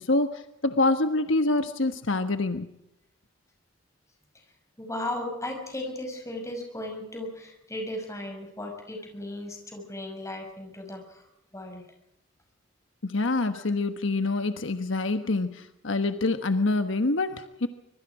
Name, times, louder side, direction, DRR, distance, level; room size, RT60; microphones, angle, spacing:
voice 1, 0.0-2.7 13.0-17.7, left 2 dB, 75° left, 8 dB, 1.3 m, -26 dB
voice 2, 4.8-11.3 11.5-11.8 13.5-13.6, left 1 dB, 15° left, 3 dB, 6.0 m, -36 dB
25.0 x 23.0 x 4.9 m, 0.84 s
head